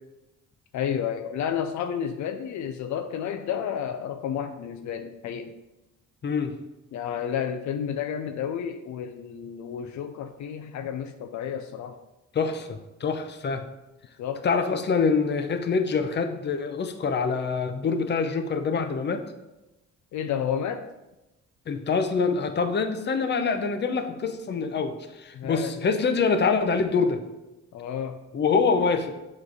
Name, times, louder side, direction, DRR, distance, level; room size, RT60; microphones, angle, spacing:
voice 1, 0.7-5.6 6.9-12.0 14.2-14.5 20.1-20.9 25.3-25.7 27.7-28.2, left 8 dB, 70° left, 7 dB, 0.5 m, -31 dB
voice 2, 6.2-6.6 12.3-13.7 14.4-19.2 21.7-27.2 28.3-29.2, left 5 dB, 35° left, 8 dB, 0.7 m, -25 dB
7.1 x 3.2 x 4.9 m, 1.0 s
cardioid pair, 90°, 30 cm